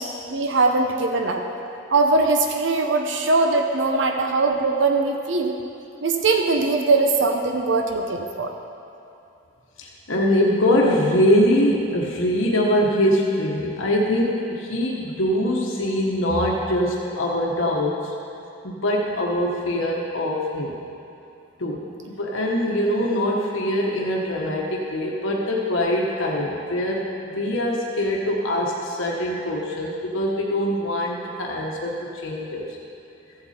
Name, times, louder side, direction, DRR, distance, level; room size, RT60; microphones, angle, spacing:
voice 1, 0.0-1.4 1.9-5.5 6.0-8.5, right 3 dB, 65° right, 3 dB, 0.7 m, -21 dB
voice 2, 9.8-18.1 18.6-20.8 21.6-32.7, left 1 dB, 80° left, -2 dB, 1.2 m, -23 dB
15.0 x 7.8 x 4.3 m, 2.7 s
head